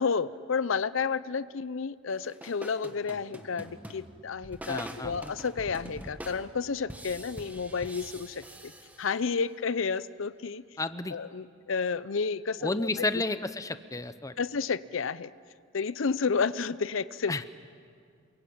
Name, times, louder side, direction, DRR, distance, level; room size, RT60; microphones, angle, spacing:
voice 1, 0.0-8.7 9.0-10.6 11.1-13.0 14.4-15.3 15.7-17.5, left 5 dB, 80° left, 17 dB, 0.6 m, -31 dB
sound 1, 2.1-9.5, right 1 dB, 10° right, 1.6 m, -45 dB
voice 2, 4.7-5.2 10.8-11.1 12.6-14.3 17.3-17.4, left 2 dB, 15° left, 12 dB, 0.8 m, -31 dB
28.0 x 22.5 x 8.7 m, 2.2 s
head